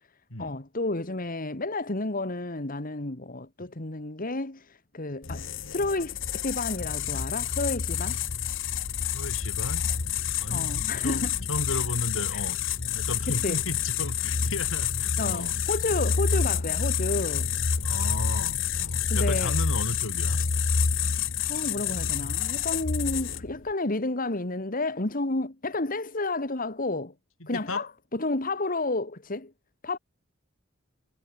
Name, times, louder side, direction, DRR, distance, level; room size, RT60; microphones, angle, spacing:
voice 1, 0.4-8.2 10.5-11.3 13.3-13.6 15.2-17.5 19.1-19.5 21.5-27.1 27.5-29.5 29.8-30.0, left 2 dB, 45° left, 1.9 m, -31 dB
sound 1, 5.2-23.6, left 7 dB, 65° left, 1.2 m, -28 dB
voice 2, 9.1-9.9 10.4-10.7 11.0-15.6 16.0-16.1 17.8-20.4 27.4-27.8, left 2 dB, 85° left, 7.5 m, -34 dB
head